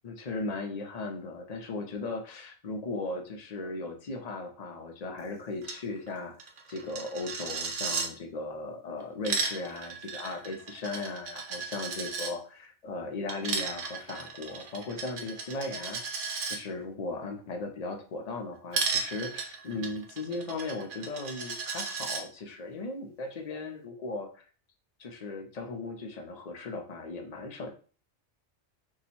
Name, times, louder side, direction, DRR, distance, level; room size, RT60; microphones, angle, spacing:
voice 1, 0.0-16.0 16.5-24.4 25.0-27.7, left 3 dB, 45° left, 3 dB, 0.6 m, -37 dB
Coin (dropping), 5.6-5.8 6.1-6.2 6.4-8.1 9.0-12.3 13.3-16.6 18.7-22.2, right 5 dB, 55° right, 0.7 m, -34 dB
2.9 x 2.3 x 4.1 m, 0.40 s
omnidirectional pair, 1.2 m